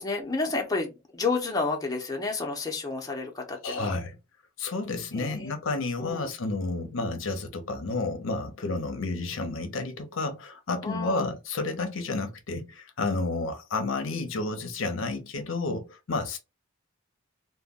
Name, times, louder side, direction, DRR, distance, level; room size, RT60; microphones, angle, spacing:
voice 1, 0.0-3.9 5.1-5.5 6.0-6.3 10.8-11.3, left 3 dB, 20° left, 0.6 m, -31 dB
voice 2, 3.6-4.2 4.6-16.4, left 3 dB, 65° left, 0.6 m, -31 dB
2.2 x 2.1 x 3.4 m
head